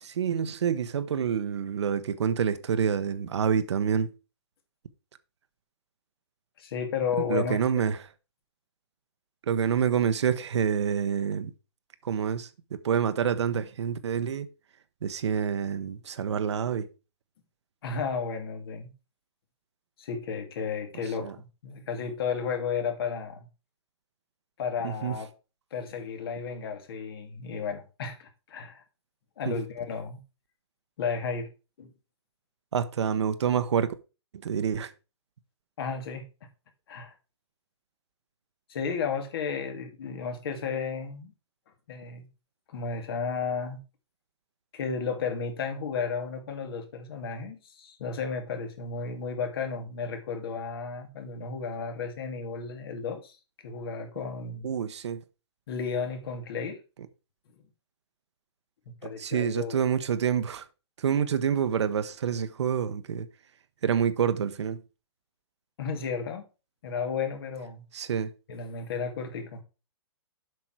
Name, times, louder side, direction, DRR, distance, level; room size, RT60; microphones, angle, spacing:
voice 1, 0.0-4.1 7.3-8.0 9.5-11.5 12.0-14.5 15.0-16.9 21.2-21.3 24.8-25.1 29.5-29.6 32.7-33.9 34.4-34.9 54.6-55.2 59.2-60.7 61.0-63.3 63.8-64.8 67.9-68.3, right 7 dB, 75° right, 1.0 m, -27 dB
voice 2, 6.6-7.6 17.8-18.9 20.0-23.4 24.6-25.3 25.7-28.8 29.4-30.2 31.0-31.5 31.8-31.9 35.8-36.3 36.9-37.1 38.7-41.3 41.9-42.3 42.7-43.8 44.7-53.4 53.6-54.7 55.7-56.8 58.9-59.8 65.8-66.5 66.8-67.8 68.5-69.6, left 5 dB, 55° left, 2.2 m, -33 dB
7.8 x 6.0 x 4.6 m
hypercardioid pair, 155°, 15 cm